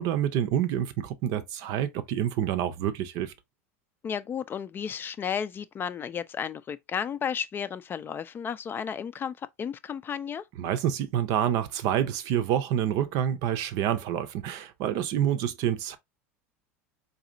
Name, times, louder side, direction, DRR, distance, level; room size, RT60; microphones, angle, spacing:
voice 1, 0.0-3.3 10.6-16.0, right 10 dB, 55° right, 0.7 m, -27 dB
voice 2, 4.0-10.4, left 7 dB, 30° left, 0.4 m, -33 dB
4.0 x 2.8 x 2.6 m
hypercardioid pair, 95°, 8 cm